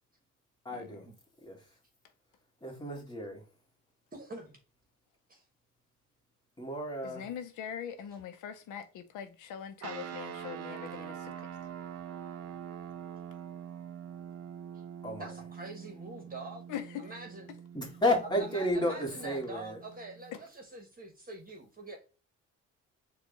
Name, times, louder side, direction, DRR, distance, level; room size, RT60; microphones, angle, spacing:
voice 1, 0.7-1.1 1.4-1.6 2.6-3.4 6.6-7.3 15.0-15.3 17.7-19.8, left 1 dB, 15° left, 1.8 m, -32 dB
voice 2, 4.1-4.6 5.3-5.4 15.2-16.6 17.0-17.5 18.4-22.0, right 2 dB, 30° right, 1.1 m, -45 dB
voice 3, 7.0-11.5 16.7-17.2 20.3-20.4, left 9 dB, 85° left, 0.6 m, -42 dB
sound 1, 9.8-20.5, right 8 dB, 55° right, 0.6 m, -45 dB
4.5 x 2.3 x 4.0 m
cardioid pair, 90°, 30 cm